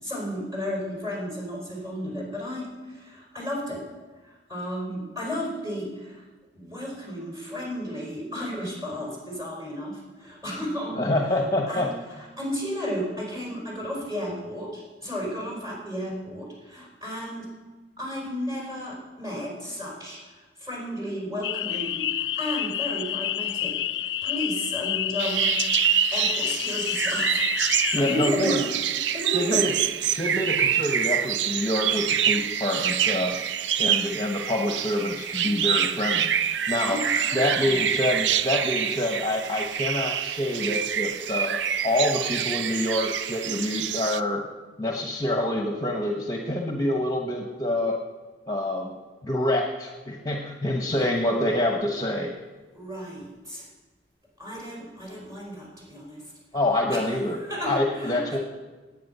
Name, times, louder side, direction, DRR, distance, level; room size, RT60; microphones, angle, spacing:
voice 1, 0.0-3.8 4.2-6.2 6.5-11.4 11.7-17.5 18.0-23.7 24.0-25.5 26.1-27.5 28.0-28.7 29.1-29.7 36.8-37.9 52.7-53.7 54.4-56.2 56.9-58.4, equal, 20° right, -3 dB, 4.9 m, -33 dB
voice 2, 11.0-11.9 27.9-28.6 29.3-29.7 30.2-33.4 33.8-36.3 36.7-37.0 37.3-41.6 41.8-44.4 44.8-47.9 48.5-48.9 49.2-52.3 56.5-57.4 57.7-58.4, left 1 dB, 20° left, 1 dB, 1.1 m, -26 dB
sound 1, 21.4-28.3, left 12 dB, 80° left, 0.5 m, -29 dB
sound 2, 25.2-44.2, right 9 dB, 80° right, 0.5 m, -26 dB
18.5 x 8.6 x 5.5 m, 1.3 s
head